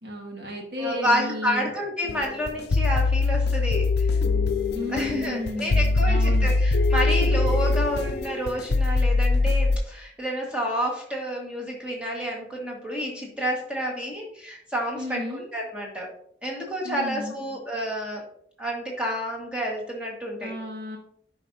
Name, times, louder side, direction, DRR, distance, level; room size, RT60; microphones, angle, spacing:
voice 1, 0.0-1.7 4.7-6.5 15.0-15.5 16.8-17.4 20.4-21.0, left 1 dB, 70° right, 0 dB, 1.7 m, -33 dB
voice 2, 0.8-4.1 4.9-16.1 16.4-18.2 18.6-20.5, equal, 5° right, -2 dB, 1.6 m, -29 dB
sound 1, 2.1-9.8, left 3 dB, 70° left, 0.5 m, -22 dB
10.5 x 4.9 x 2.7 m, 0.67 s
head